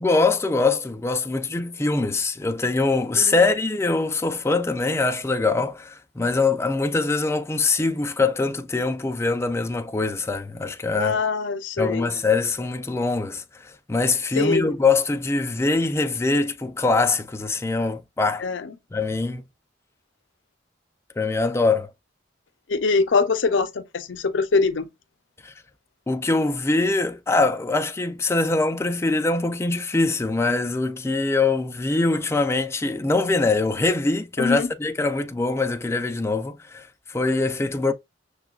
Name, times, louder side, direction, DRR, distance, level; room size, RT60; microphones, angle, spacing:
voice 1, 0.0-11.2 11.8-18.4 18.9-19.4 21.2-21.9 25.4-25.5 26.1-37.9, left 3 dB, 15° left, 0.3 m, -23 dB
voice 2, 10.9-12.1 14.4-14.8 18.4-18.7 22.7-24.9 34.4-34.7, left 4 dB, 85° left, 0.5 m, -23 dB
6.6 x 2.2 x 2.3 m
head